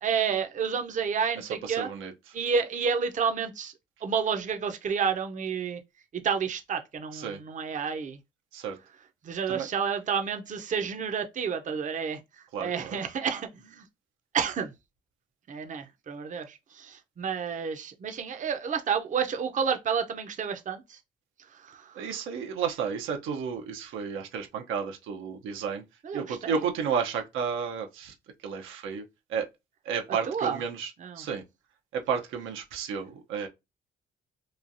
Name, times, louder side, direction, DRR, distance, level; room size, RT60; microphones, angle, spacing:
voice 1, 0.0-1.9 2.3-3.7 4.0-5.8 6.1-8.2 9.2-13.9 14.3-14.7 15.5-21.0 21.5-22.1 26.0-26.6 30.3-30.6 31.0-31.2, right 6 dB, 40° right, 0.6 m, -30 dB
voice 2, 1.4-2.1 7.1-7.4 8.5-8.8 9.5-9.7 12.5-13.0 21.9-25.8 26.1-28.1 28.4-29.0 29.3-29.5 29.8-30.9 31.2-31.4 31.9-33.5, right 6 dB, 90° right, 0.7 m, -32 dB
3.0 x 2.3 x 2.6 m
cardioid pair, 90°, 20 cm